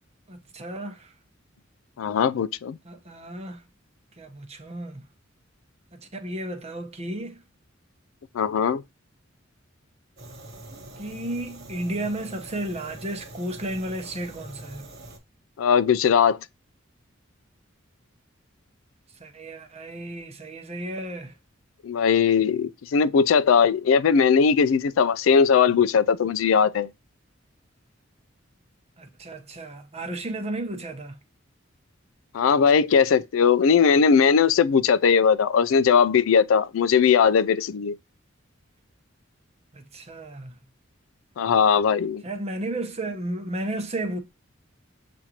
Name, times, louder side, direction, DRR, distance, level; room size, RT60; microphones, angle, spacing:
voice 1, 0.3-1.1 2.8-3.6 4.2-5.0 5.9-7.4 11.0-14.9 19.2-21.4 29.0-31.2 39.7-40.6 42.2-44.2, right 1 dB, 30° right, 0.9 m, -33 dB
voice 2, 2.0-2.8 8.3-8.8 15.6-16.4 21.8-26.9 32.3-37.9 41.4-42.2, left 6 dB, 80° left, 0.4 m, -19 dB
Fire, 10.2-15.2, right 1 dB, 55° right, 1.2 m, -44 dB
7.3 x 2.6 x 2.8 m
head